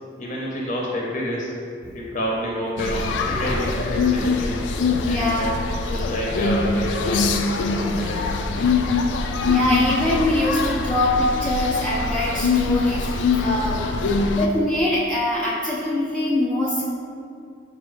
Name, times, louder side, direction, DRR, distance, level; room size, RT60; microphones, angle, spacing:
voice 1, 0.2-1.6 1.9-4.6 5.0-5.6 5.9-8.7, equal, 45° left, -3 dB, 0.6 m, -28 dB
sound 1, 2.8-14.5, left 4 dB, 80° left, 0.3 m, -23 dB
voice 2, 4.9-5.5 9.5-16.8, left 1 dB, 5° left, -9 dB, 0.4 m, -23 dB
5.3 x 2.1 x 4.7 m, 2.4 s
head